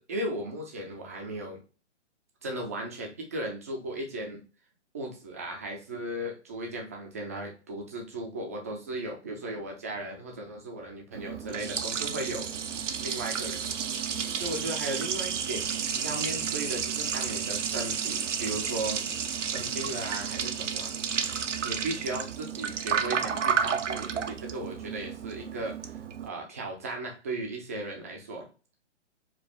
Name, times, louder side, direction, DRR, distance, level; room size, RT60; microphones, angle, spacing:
voice 1, 0.0-1.6 2.4-4.4 4.9-12.6 13.0-13.6 14.4-19.0 19.5-20.9 21.6-28.5, right 1 dB, 15° right, 0 dB, 0.4 m, -36 dB
Liquid, 11.1-26.3, right 7 dB, 85° right, 0.6 m, -31 dB
4.9 x 2.2 x 3.4 m, 0.34 s
figure-of-eight pair, 135°, 36 cm